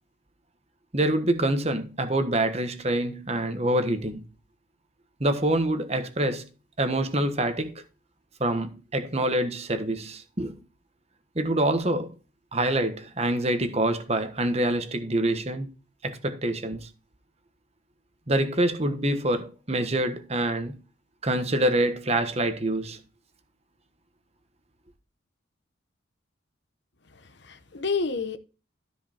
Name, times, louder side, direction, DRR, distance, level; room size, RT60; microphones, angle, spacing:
voice 1, 0.9-4.3 5.2-6.5 6.8-7.7 8.4-10.6 11.3-12.1 12.5-15.7 16.0-16.9 18.3-20.8 21.2-23.0, right 1 dB, 30° right, 1.3 m, -26 dB
voice 2, 27.1-28.4, left 4 dB, 60° left, 1.0 m, -30 dB
13.5 x 5.3 x 4.4 m
head